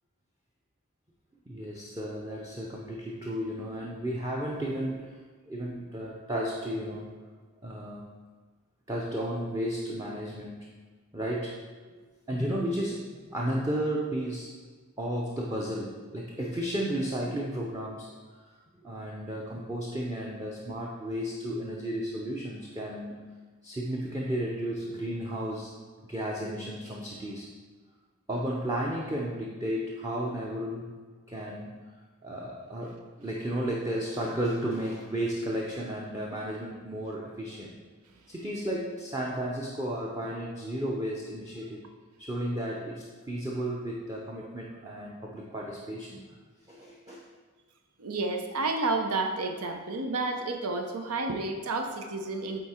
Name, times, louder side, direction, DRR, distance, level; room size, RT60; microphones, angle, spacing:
voice 1, 1.5-5.2 5.5-7.1 7.6-8.1 8.9-10.7 11.1-11.6 11.9-14.6 15.0-18.1 18.8-23.2 23.6-25.7 26.1-27.5 28.3-30.9 31.3-31.8 32.2-37.7 38.3-41.8 42.2-46.2 46.7-47.2, right 1 dB, 15° right, -3 dB, 0.6 m, -33 dB
voice 2, 48.0-52.6, right 3 dB, 90° right, 5 dB, 0.7 m, -30 dB
8.3 x 4.2 x 4.3 m, 1.4 s
head